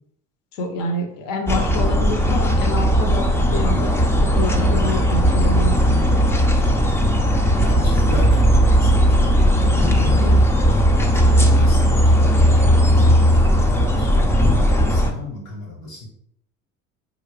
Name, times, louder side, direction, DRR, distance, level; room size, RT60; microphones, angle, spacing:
voice 1, 0.5-4.0 4.2-6.0, left 1 dB, 55° left, 4 dB, 0.7 m, -27 dB
sound 1, 1.5-15.1, equal, 5° left, 0.3 m, -16 dB
voice 2, 7.6-10.5 11.1-16.1, left 2 dB, 80° left, -2 dB, 1.3 m, -33 dB
4.0 x 2.5 x 3.2 m, 0.72 s
hypercardioid pair, 65°, 40 cm